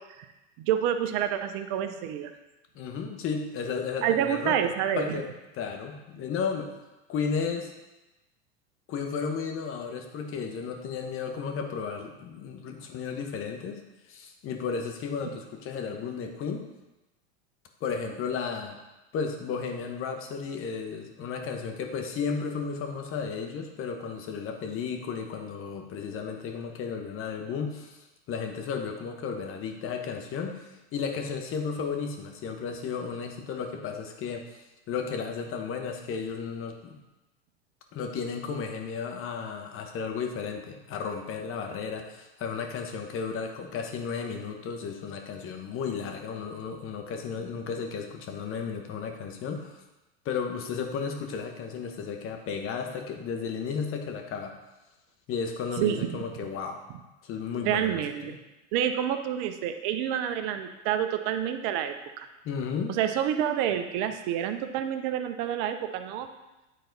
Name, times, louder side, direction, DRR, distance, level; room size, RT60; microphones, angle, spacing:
voice 1, 0.6-2.3 4.0-5.2 55.8-56.2 57.6-58.4 58.7-62.3 62.9-66.3, right 10 dB, 50° right, 8 dB, 0.8 m, -28 dB
voice 2, 2.7-4.6 4.9-5.3 5.5-6.7 7.1-7.7 8.9-13.8 14.1-16.7 17.8-18.8 19.1-28.0 28.3-34.6 34.9-37.0 37.9-49.8 50.2-54.5 55.3-56.8 57.2-58.4 62.4-63.0, left 6 dB, 35° left, 4 dB, 1.2 m, -33 dB
9.4 x 4.0 x 4.0 m, 1.0 s
hypercardioid pair, 105°, 36 cm